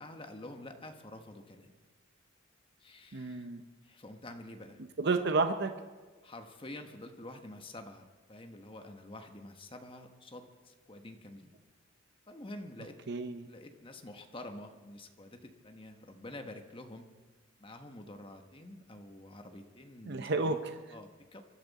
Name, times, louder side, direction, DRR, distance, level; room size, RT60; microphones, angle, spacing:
voice 1, 0.0-1.7 2.8-3.5 3.8-4.8 6.2-11.5 12.3-13.0 13.5-17.1 17.6-21.4, left 1 dB, 25° left, 6 dB, 1.2 m, -48 dB
voice 2, 3.1-3.6 5.0-5.7 13.1-13.5 20.1-20.7, right 3 dB, 55° right, 7 dB, 0.7 m, -31 dB
23.5 x 12.0 x 4.1 m, 1.3 s
head